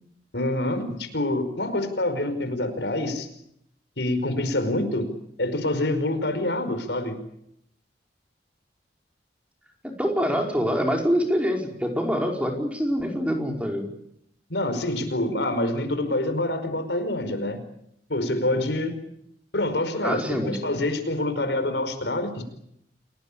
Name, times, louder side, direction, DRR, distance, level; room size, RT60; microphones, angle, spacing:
voice 1, 0.3-3.3 4.0-5.1 5.4-7.2 14.5-17.6 18.1-18.9 19.5-22.4, left 1 dB, 75° left, 9 dB, 5.1 m, -26 dB
voice 2, 9.8-13.9 20.0-20.8, equal, 5° right, 2 dB, 5.0 m, -25 dB
29.5 x 19.0 x 8.6 m, 0.75 s
head